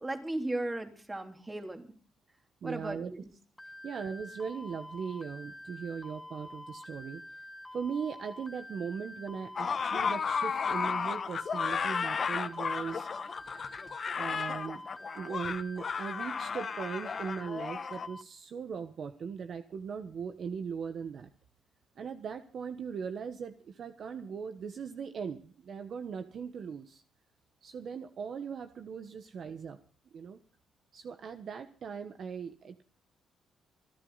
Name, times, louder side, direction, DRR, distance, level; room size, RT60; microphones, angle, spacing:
voice 1, 0.0-1.9 2.6-3.3, right 2 dB, 20° right, 5 dB, 3.0 m, -36 dB
voice 2, 2.6-3.1 3.8-7.2 7.7-13.1 14.1-14.8 15.1-21.3 22.0-27.0 27.6-29.8 30.1-30.4 30.9-32.8, right 6 dB, 55° right, 8 dB, 1.1 m, -39 dB
sound 1, 3.6-18.2, left 1 dB, 10° left, 1.4 m, -47 dB
sound 2, 9.6-18.1, left 6 dB, 45° left, 1.0 m, -33 dB
26.0 x 11.5 x 4.0 m, 0.38 s
cardioid pair, 90°, 0 cm